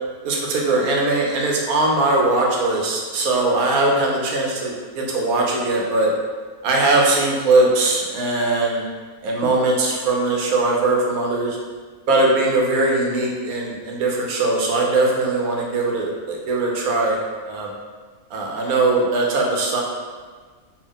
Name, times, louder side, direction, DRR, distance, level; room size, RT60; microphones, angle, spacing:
voice 1, 0.2-6.1 6.6-8.8 9.2-11.6 12.1-17.2 17.4-17.7 18.3-19.8, right 2 dB, 80° right, -1 dB, 1.1 m, -20 dB
3.4 x 2.5 x 3.6 m, 1.5 s
omnidirectional pair, 1.5 m